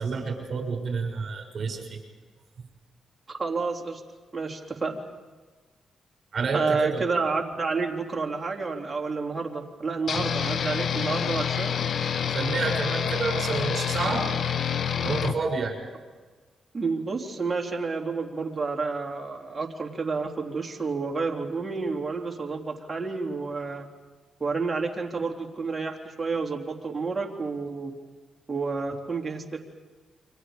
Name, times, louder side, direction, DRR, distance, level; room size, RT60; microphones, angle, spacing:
voice 1, 0.0-2.0 6.3-7.0 12.3-14.2 15.0-15.8, right 4 dB, 55° right, 2 dB, 7.2 m, -29 dB
voice 2, 3.3-4.0 4.3-5.0 6.5-11.8 16.7-23.9 24.4-27.9 28.5-29.6, right 4 dB, 25° right, 1 dB, 3.5 m, -30 dB
sound 1, 10.1-15.4, left 8 dB, 65° left, 1.1 m, -27 dB
29.5 x 25.0 x 5.3 m, 1.4 s
cardioid pair, 75°, 0 cm